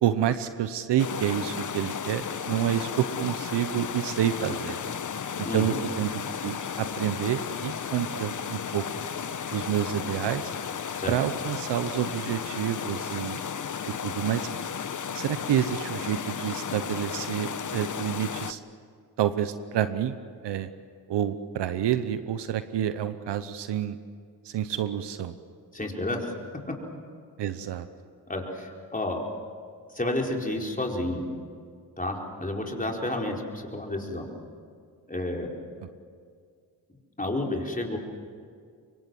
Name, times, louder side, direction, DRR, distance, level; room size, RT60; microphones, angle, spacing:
voice 1, 0.0-4.8 5.4-8.8 9.5-10.5 11.1-13.4 13.9-14.5 15.1-18.6 19.2-20.2 20.4-20.7 21.1-24.0 24.4-25.3 27.4-27.9, right 10 dB, 90° right, 11 dB, 0.9 m, -28 dB
sound 1, 1.0-18.5, left 7 dB, 45° left, 1.0 m, -34 dB
voice 2, 5.4-5.8 11.0-11.1 25.7-26.3 28.3-29.2 29.9-31.2 32.0-34.3 35.1-35.5 37.2-38.0, left 1 dB, 20° left, 0 dB, 4.7 m, -30 dB
25.5 x 23.0 x 7.7 m, 2.1 s
cardioid pair, 60°, 41 cm